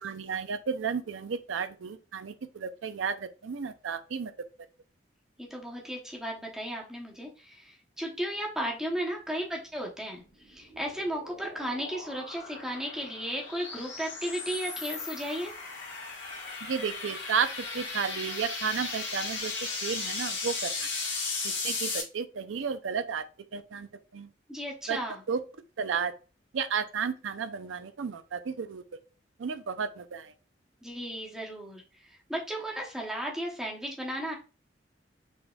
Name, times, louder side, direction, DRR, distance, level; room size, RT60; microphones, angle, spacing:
voice 1, 0.0-4.3 16.6-17.5 17.7-19.5 19.8-20.9 21.4-23.2 23.5-24.3 24.9-25.0 25.3-25.4 25.8-26.1 26.5-28.8 29.4-30.3, right 6 dB, 80° right, 0.5 m, -33 dB
voice 2, 5.5-7.3 8.0-10.2 10.5-15.5 24.5-25.1 30.8-31.8 32.3-34.4, equal, 5° right, 0.9 m, -34 dB
sound 1, 10.3-22.0, left 4 dB, 75° left, 1.6 m, -36 dB
4.2 x 3.4 x 2.3 m
head